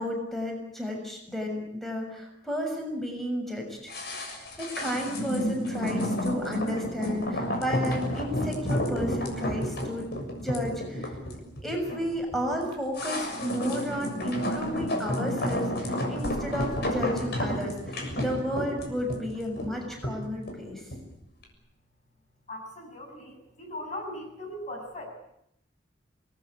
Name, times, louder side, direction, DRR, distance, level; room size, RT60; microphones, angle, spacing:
voice 1, 0.0-10.1 10.4-11.1 11.6-20.8, equal, ahead, 1 dB, 6.8 m, -32 dB
sound 1, 3.9-21.1 21.4-21.5, equal, 60° left, 6.9 m, -31 dB
voice 2, 22.5-25.1, left 1 dB, 40° left, 3 dB, 7.5 m, -39 dB
27.5 x 20.0 x 8.7 m, 0.79 s
head